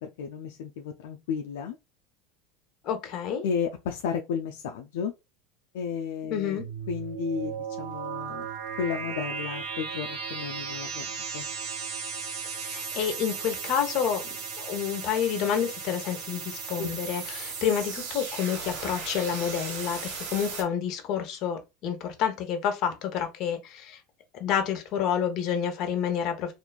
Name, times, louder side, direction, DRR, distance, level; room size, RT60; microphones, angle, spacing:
voice 1, 0.0-1.8 3.4-5.1 5.7-6.6 6.9-8.5 8.8-11.1 11.3-11.5 16.6-17.0, left 6 dB, 80° left, 0.3 m, -33 dB
voice 2, 2.8-3.4 6.3-6.6 12.5-14.2 14.6-24.0 24.4-26.5, left 8 dB, 55° left, 0.9 m, -29 dB
sound 1, 6.6-20.6, right 5 dB, 75° right, 1.4 m, -36 dB
3.0 x 2.5 x 2.3 m
supercardioid pair, 105°, 0 cm